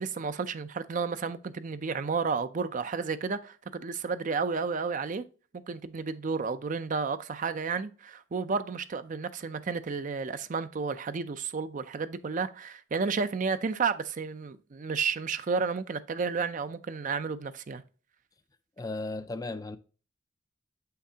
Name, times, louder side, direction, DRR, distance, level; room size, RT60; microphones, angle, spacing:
voice 1, 0.0-5.2 5.7-17.8, right 5 dB, 40° right, 0.4 m, -32 dB
voice 2, 18.8-19.8, left 2 dB, 20° left, 0.4 m, -35 dB
7.4 x 5.8 x 2.8 m
head